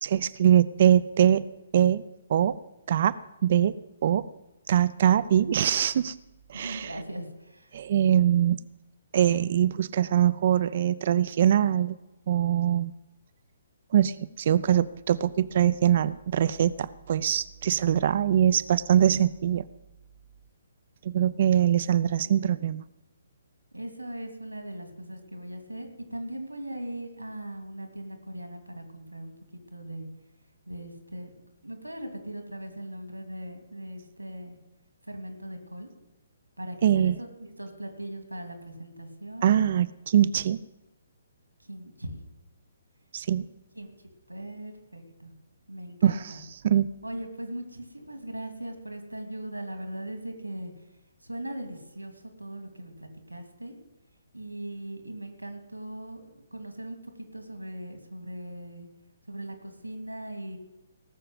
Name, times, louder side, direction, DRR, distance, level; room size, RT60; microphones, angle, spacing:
voice 1, 0.0-1.5 1.7-2.0 2.3-2.6 2.9-3.8 4.0-4.3 4.7-6.1 6.5-6.9 7.7-8.6 9.1-12.0 12.3-12.9 13.9-19.7 21.0-22.8 36.8-37.2 39.4-40.6 43.1-43.5 46.0-46.4 46.6-46.9, right 10 dB, 45° right, 17 dB, 0.5 m, -23 dB
voice 2, 6.5-7.8 23.7-29.3 29.7-30.1 30.7-34.6 35.1-35.9 36.6-37.1 37.4-39.5 41.7-42.2 43.7-43.9 44.3-45.3 45.7-46.4 47.0-50.7 51.2-53.8 54.3-56.2 56.5-57.0 57.3-58.9 59.3-60.6, right 1 dB, 90° right, 5 dB, 2.7 m, -39 dB
18.0 x 6.7 x 7.9 m, 1.0 s
figure-of-eight pair, 130°, 0 cm